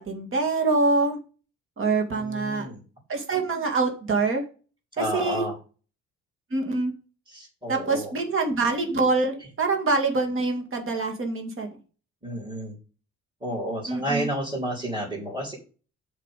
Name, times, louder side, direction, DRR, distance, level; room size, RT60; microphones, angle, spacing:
voice 1, 0.1-1.2 1.8-2.7 3.1-4.4 5.0-5.5 6.5-6.9 7.7-11.7 13.9-14.3, right 3 dB, 45° right, 3 dB, 2.3 m, -25 dB
voice 2, 2.1-2.8 5.0-5.6 7.3-8.1 12.2-12.7 13.4-15.6, equal, 15° right, -6 dB, 3.9 m, -31 dB
7.4 x 5.1 x 6.7 m, 0.37 s
cardioid pair, 90°, 30 cm